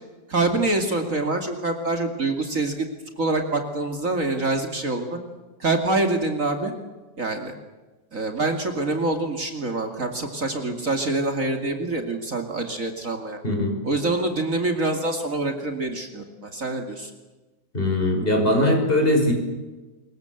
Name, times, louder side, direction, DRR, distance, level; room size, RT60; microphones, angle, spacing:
voice 1, 0.3-2.9 3.2-5.2 5.6-6.7 7.2-7.5 8.1-13.4 13.8-17.1, right 2 dB, 45° right, 5 dB, 2.8 m, -25 dB
voice 2, 13.4-13.8 17.7-19.3, left 1 dB, 30° left, 3 dB, 6.1 m, -20 dB
26.0 x 22.5 x 7.9 m, 1.2 s
omnidirectional pair, 1.9 m